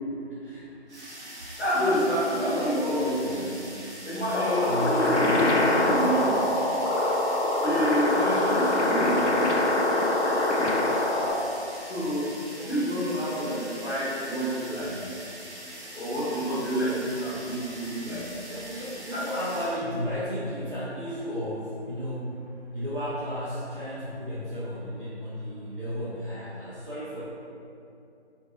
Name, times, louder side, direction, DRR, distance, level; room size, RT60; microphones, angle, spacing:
voice 1, 0.3-0.7 4.6-5.2 18.5-22.4 22.7-27.2, equal, 50° right, -11 dB, 0.6 m, -33 dB
sound 1, 0.9-19.9, right 1 dB, 80° right, 1.1 m, -43 dB
voice 2, 1.6-3.6 4.0-6.4 7.6-9.4 11.9-12.3 12.6-14.9 15.9-18.2 19.1-19.2, equal, 70° left, -9 dB, 1.2 m, -28 dB
sound 2, 4.3-11.3, left 2 dB, 90° left, 0.5 m, -24 dB
3.0 x 2.6 x 2.4 m, 2.6 s
figure-of-eight pair, 170°, 34 cm